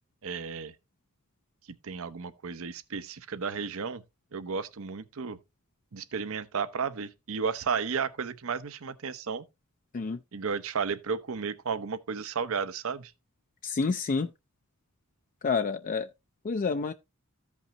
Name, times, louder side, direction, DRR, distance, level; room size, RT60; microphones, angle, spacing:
voice 1, 0.2-0.7 1.8-4.0 4.3-5.4 5.9-9.4 10.3-13.1, right 5 dB, 65° right, 0.7 m, -33 dB
voice 2, 13.6-14.3 15.4-16.1 16.4-16.9, left 4 dB, 40° left, 0.4 m, -28 dB
14.0 x 5.4 x 2.8 m
head